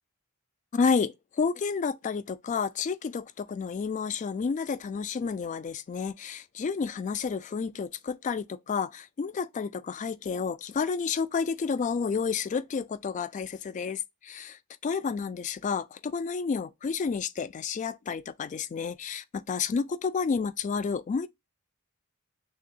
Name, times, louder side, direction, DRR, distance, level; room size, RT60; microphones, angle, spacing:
voice 1, 0.7-21.3, left 5 dB, 35° left, 0.3 m, -30 dB
6.0 x 2.8 x 2.3 m
head